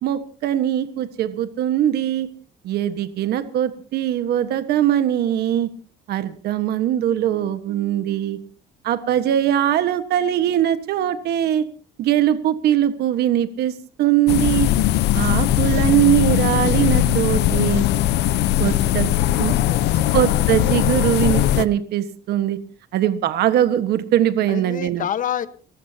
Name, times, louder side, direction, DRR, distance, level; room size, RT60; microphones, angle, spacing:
voice 1, 0.0-2.3 2.6-5.7 6.1-8.4 8.8-11.7 12.0-14.7 15.1-17.8 18.6-19.5 20.1-22.6 22.9-25.0, right 11 dB, 70° right, 10 dB, 1.5 m, -21 dB
sound 1, 14.3-21.6, left 13 dB, 80° left, 0.8 m, -19 dB
voice 2, 19.4-20.2 24.5-25.5, left 10 dB, 50° left, 13 dB, 1.3 m, -28 dB
30.0 x 15.0 x 2.9 m, 0.40 s
cardioid pair, 110°, 17 cm